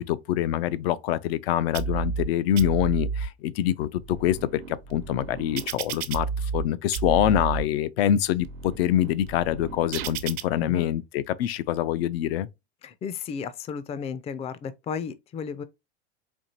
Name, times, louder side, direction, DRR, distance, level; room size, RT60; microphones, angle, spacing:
voice 1, 0.0-12.5, left 11 dB, 75° left, 0.5 m, -25 dB
sound 1, 1.7-2.3 2.6-3.3 3.9-6.7 6.9-7.6 8.2-10.4, right 6 dB, 70° right, 0.7 m, -32 dB
voice 2, 12.8-15.6, left 6 dB, 20° left, 0.4 m, -34 dB
4.4 x 2.9 x 2.7 m
supercardioid pair, 110°, 31 cm